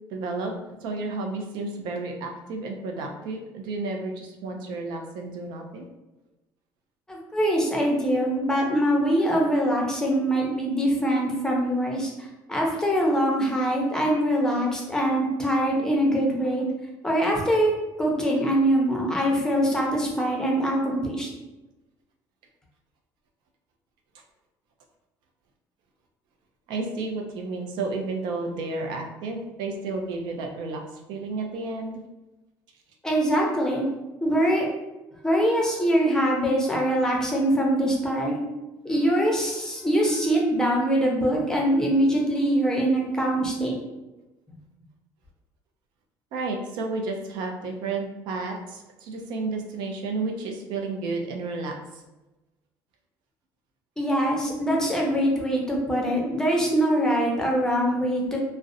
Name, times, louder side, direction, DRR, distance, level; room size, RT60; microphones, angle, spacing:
voice 1, 0.1-0.5 0.8-5.9 26.7-32.0 46.3-52.0, right 3 dB, 80° right, 3 dB, 0.4 m, -32 dB
voice 2, 7.1-16.7 17.0-17.7 18.0-21.3 33.0-33.9 34.2-34.6 35.2-38.4 38.8-43.8 54.0-58.4, equal, 10° left, -2 dB, 0.6 m, -23 dB
2.4 x 2.0 x 2.6 m, 1.1 s
cardioid pair, 115°, 8 cm